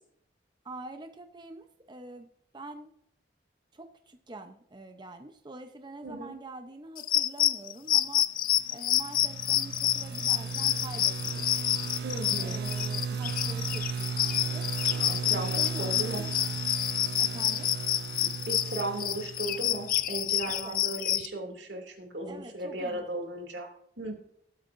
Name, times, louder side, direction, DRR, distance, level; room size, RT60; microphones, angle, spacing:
voice 1, 0.6-2.9 3.7-8.3 8.7-11.4 12.4-14.7 15.2-16.4 17.2-17.7 20.5-20.7 22.3-23.1, right 2 dB, 25° right, 6 dB, 0.7 m, -45 dB
voice 2, 6.0-6.4 12.0-12.7 13.1-13.2 14.8-16.3 18.2-24.1, right 2 dB, 80° right, 3 dB, 2.6 m, -36 dB
sound 1, 7.0-21.3, left 12 dB, 50° left, 0.5 m, -28 dB
sound 2, 8.5-20.3, right 6 dB, 65° right, 0.5 m, -36 dB
19.0 x 8.4 x 2.6 m, 0.70 s
head